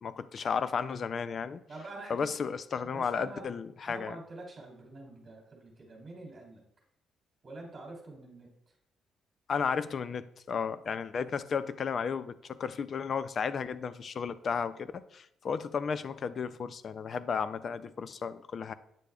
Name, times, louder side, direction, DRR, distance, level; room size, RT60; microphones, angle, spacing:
voice 1, 0.0-1.6 2.1-4.2 9.5-18.7, left 6 dB, 45° left, 14 dB, 0.4 m, -33 dB
voice 2, 1.7-2.4 2.8-3.5 3.8-6.6 7.4-8.5, right 2 dB, 30° right, -1 dB, 2.8 m, -46 dB
9.0 x 6.7 x 2.4 m, 0.77 s
cardioid pair, 120°, 0 cm